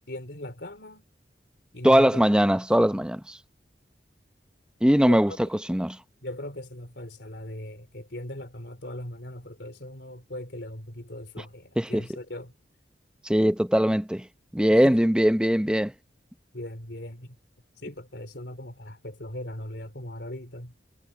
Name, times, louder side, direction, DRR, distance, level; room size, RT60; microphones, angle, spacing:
voice 1, 0.1-1.1 1.7-2.2 2.8-3.1 5.1-5.6 6.2-12.5 14.7-15.0 16.5-17.4 17.8-20.7, left 1 dB, 65° left, 3.6 m, -39 dB
voice 2, 1.8-3.4 4.8-5.3 5.7-6.0 11.8-12.0 13.2-14.2 14.5-15.9, equal, 5° right, 0.7 m, -21 dB
head